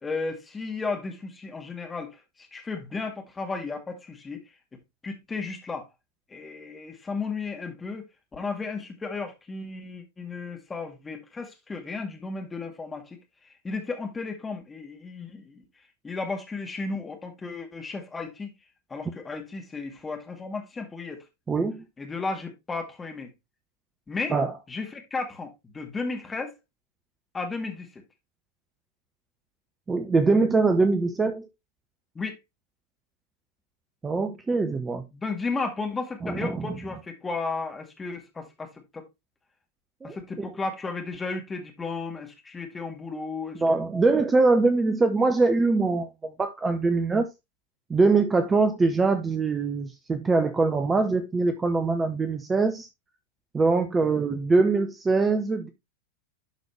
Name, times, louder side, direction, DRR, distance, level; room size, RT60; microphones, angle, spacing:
voice 1, 0.0-4.4 5.0-5.9 6.3-8.0 8.3-13.2 13.4-15.6 16.0-18.5 18.9-21.2 22.0-23.3 24.1-24.4 24.7-26.6 27.3-28.0 32.2-32.4 35.1-39.0 40.0-43.8, left 4 dB, 15° left, 2.0 m, -34 dB
voice 2, 21.5-21.8 24.3-24.5 29.9-31.5 34.0-35.0 36.2-36.8 40.0-40.5 43.6-47.2 47.9-52.9 53.5-55.7, right 3 dB, 15° right, 0.8 m, -23 dB
11.5 x 4.1 x 3.1 m
figure-of-eight pair, 90°, 0 cm